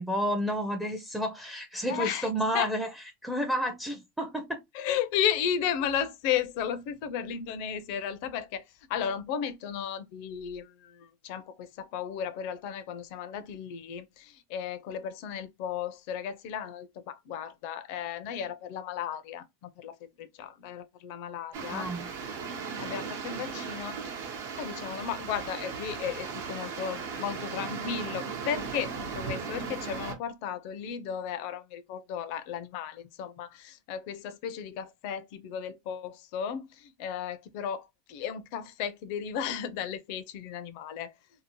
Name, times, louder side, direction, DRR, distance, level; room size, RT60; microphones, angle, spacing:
voice 1, 0.0-2.9 3.2-4.6 21.7-22.1, equal, 5° right, 0.5 m, -31 dB
voice 2, 1.9-2.3 2.5-2.7 4.7-8.6 8.9-21.9 22.8-24.0 24.6-41.1, left 8 dB, 60° left, 0.5 m, -34 dB
sound 1, 21.5-30.1, right 5 dB, 75° right, 0.9 m, -37 dB
2.7 x 2.1 x 2.8 m
supercardioid pair, 125°, 0 cm